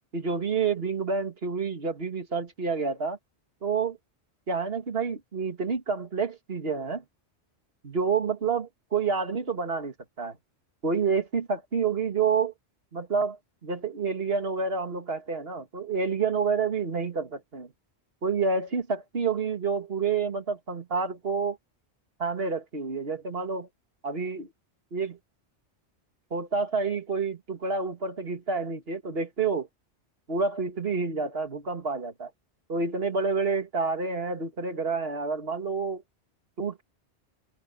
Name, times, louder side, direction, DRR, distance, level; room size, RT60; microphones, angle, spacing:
voice 1, 0.1-3.2 3.6-4.0 4.5-7.0 7.8-10.4 10.8-12.5 12.9-17.7 18.2-21.6 22.2-23.7 24.0-24.5 24.9-25.2 26.3-29.7 30.3-32.3 32.7-36.0 36.6-36.8, right 5 dB, 60° right, 2.3 m, -28 dB
open air
omnidirectional pair, 1.1 m